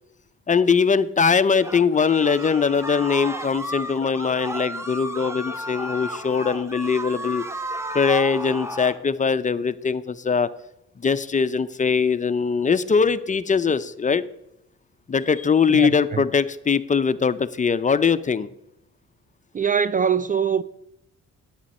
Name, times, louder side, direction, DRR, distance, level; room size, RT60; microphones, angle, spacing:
voice 1, 0.5-7.4 7.9-10.5 11.0-14.2 15.1-18.5, left 5 dB, 25° left, 0.5 m, -21 dB
sound 1, 1.6-9.0, right 1 dB, 10° right, 1.0 m, -33 dB
voice 2, 15.7-16.2 19.5-20.6, right 7 dB, 30° right, 0.3 m, -23 dB
10.5 x 9.0 x 4.2 m
cardioid pair, 90°, 30 cm